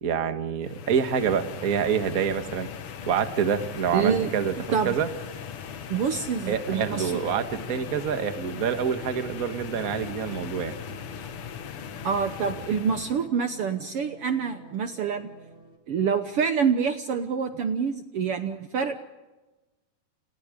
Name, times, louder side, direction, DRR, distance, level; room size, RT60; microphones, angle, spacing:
voice 1, 0.0-2.7 3.1-4.5 4.8-5.1 6.5-10.7, right 7 dB, 40° right, 8 dB, 1.4 m, -27 dB
sound 1, 0.6-13.3, left 8 dB, 55° left, 1.8 m, -39 dB
sound 2, 3.0-15.8, left 2 dB, 20° right, 2.9 m, -48 dB
voice 2, 3.9-4.3 4.7-4.9 5.9-7.1 12.0-15.3 15.9-19.0, right 6 dB, 60° right, 8 dB, 1.7 m, -26 dB
30.0 x 29.5 x 5.2 m, 1.1 s
omnidirectional pair, 3.4 m